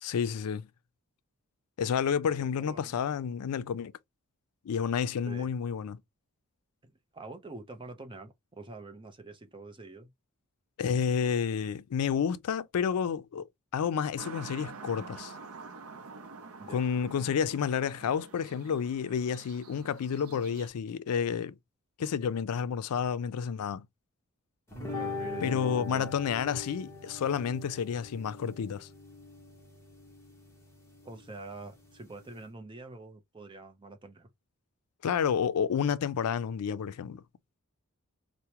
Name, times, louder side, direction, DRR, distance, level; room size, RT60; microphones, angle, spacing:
voice 1, 0.0-0.7 1.8-3.9 4.6-6.0 10.8-13.5 13.7-15.3 16.7-21.6 22.0-23.9 25.4-28.9 35.0-37.2, left 7 dB, 85° left, 0.4 m, -30 dB
voice 2, 2.4-3.0 5.3-5.5 6.8-10.1 16.6-16.9 24.9-26.4 31.0-34.3, right 3 dB, 20° right, 0.6 m, -46 dB
sound 1, 14.2-20.7, right 4 dB, 75° right, 0.6 m, -47 dB
sound 2, 24.7-32.4, left 3 dB, 10° left, 1.0 m, -42 dB
4.6 x 2.1 x 2.8 m
head